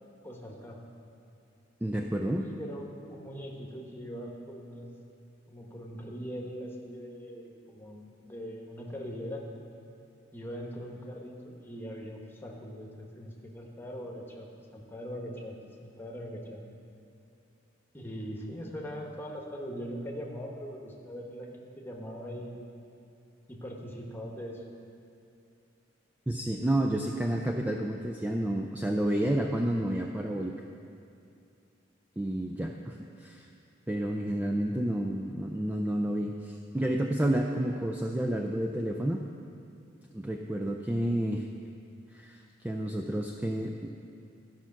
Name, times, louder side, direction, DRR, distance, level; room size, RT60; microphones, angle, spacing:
voice 1, 0.2-0.8 2.4-4.9 5.5-9.4 10.3-16.6 17.9-22.6 23.5-24.6, equal, 10° left, 0 dB, 1.2 m, -41 dB
voice 2, 1.8-2.4 26.3-30.6 32.2-33.5 33.9-39.2 40.1-41.5 42.1-43.9, right 1 dB, 10° right, 1 dB, 0.4 m, -30 dB
13.0 x 5.8 x 5.9 m, 2.6 s
head